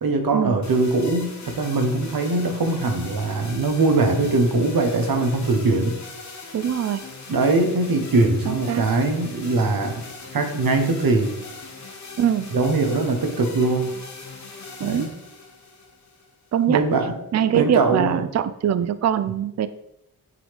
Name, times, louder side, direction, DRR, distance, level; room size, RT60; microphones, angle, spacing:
voice 1, 0.0-6.0 7.3-10.0 10.3-11.3 12.5-13.9 14.8-15.1 16.7-17.2 17.5-18.2, right 3 dB, 65° right, 5 dB, 1.0 m, -21 dB
sound 1, 0.6-16.6, left 4 dB, 45° left, 1.2 m, -40 dB
voice 2, 6.5-7.0 8.5-8.8 12.2-12.5 14.8-15.1 16.5-16.8 17.3-19.7, right 9 dB, 45° right, 13 dB, 0.4 m, -22 dB
7.8 x 3.9 x 3.4 m, 0.81 s
cardioid pair, 60°, 39 cm